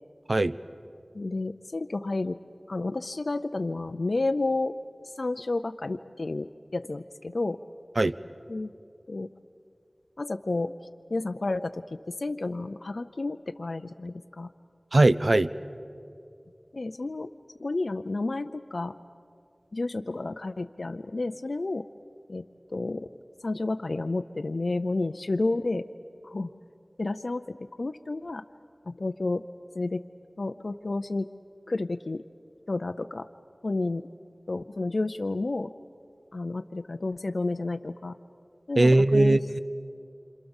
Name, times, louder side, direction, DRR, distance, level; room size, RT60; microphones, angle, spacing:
voice 1, 1.1-2.4 2.7-4.8 5.2-7.6 8.5-8.7 9.1-9.3 10.2-10.7 11.1-14.5 16.7-17.3 17.6-18.9 19.7-21.8 22.3-22.5 22.7-23.1 23.4-25.9 26.2-26.5 27.0-28.4 28.9-29.4 29.7-30.0 30.4-31.3 31.7-32.2 32.7-33.3 33.6-34.0 34.5-35.7 36.3-38.2 38.7-39.4, left 2 dB, 80° left, 8 dB, 0.5 m, -31 dB
voice 2, 14.9-15.5 38.8-39.6, right 2 dB, 60° right, 14 dB, 0.6 m, -20 dB
28.0 x 26.0 x 7.2 m, 2.5 s
wide cardioid pair, 50°, 0 cm